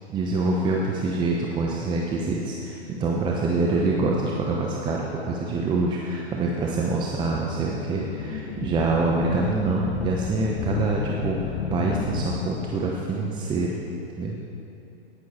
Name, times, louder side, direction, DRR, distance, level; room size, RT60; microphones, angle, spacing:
voice 1, 0.1-13.8 14.2-14.4, right 3 dB, 15° right, -2 dB, 0.7 m, -25 dB
sound 1, 6.7-13.0, left 5 dB, 25° left, 0.9 m, -33 dB
18.0 x 6.3 x 4.2 m, 2.8 s
figure-of-eight pair, 115°, 33 cm